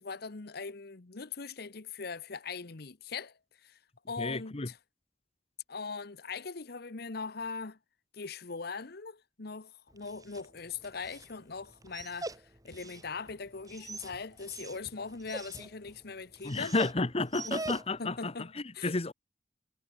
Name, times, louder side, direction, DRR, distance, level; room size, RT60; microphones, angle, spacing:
voice 1, 0.0-3.8 4.1-4.8 5.7-7.8 8.1-16.8 17.4-17.6 18.0-18.5 18.7-18.9, left 4 dB, 60° left, 1.0 m, -41 dB
voice 2, 4.2-4.7 16.4-19.1, left 3 dB, 35° left, 1.1 m, -32 dB
Dog, 9.9-18.2, right 2 dB, 20° right, 5.6 m, -44 dB
head